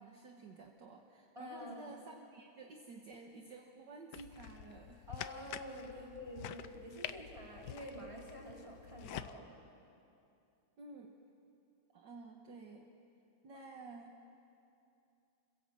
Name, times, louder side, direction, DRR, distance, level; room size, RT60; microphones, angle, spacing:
voice 1, 0.0-5.1 6.0-6.1 10.8-11.2 11.9-12.9 13.4-14.2, right 3 dB, 60° right, 1 dB, 1.8 m, -52 dB
voice 2, 1.3-1.9 5.1-9.5 13.5-13.6, equal, 15° right, -4 dB, 4.4 m, -48 dB
sound 1, 4.1-9.3, left 10 dB, 65° left, 1.2 m, -47 dB
29.5 x 16.5 x 7.8 m, 2.7 s
omnidirectional pair, 2.3 m